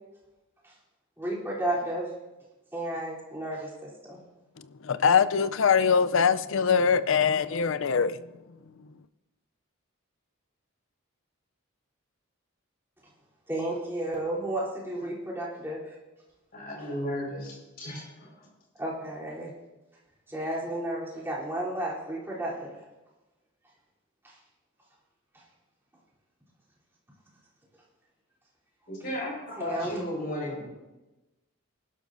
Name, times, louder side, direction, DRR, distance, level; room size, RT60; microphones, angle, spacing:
voice 1, 1.2-2.1 2.7-4.2 13.5-15.9 18.8-19.5 20.3-22.7 24.2-24.3 29.6-30.0, right 1 dB, 10° right, 3.4 m, -32 dB
voice 2, 4.8-8.2, left 6 dB, 65° left, 0.5 m, -22 dB
voice 3, 16.5-18.5 28.9-30.7, left 1 dB, 45° left, 4.9 m, -35 dB
20.5 x 12.0 x 2.6 m
head